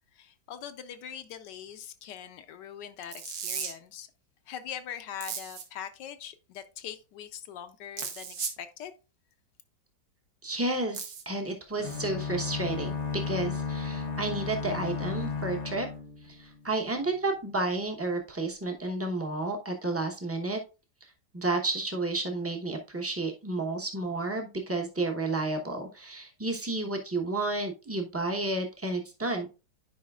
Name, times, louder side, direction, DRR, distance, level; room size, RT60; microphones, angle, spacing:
voice 1, 0.1-4.1 4.5-8.9, left 9 dB, 75° left, 1.2 m, -42 dB
sound 1, 3.1-3.7 5.2-5.6 8.0-8.6 10.9-11.2, right 7 dB, 85° right, 1.8 m, -35 dB
voice 2, 10.4-15.9 16.2-20.6 21.0-29.5, right 2 dB, 15° right, 0.4 m, -31 dB
sound 2, 11.8-16.8, left 5 dB, 50° left, 0.9 m, -34 dB
10.5 x 5.0 x 2.4 m
omnidirectional pair, 2.0 m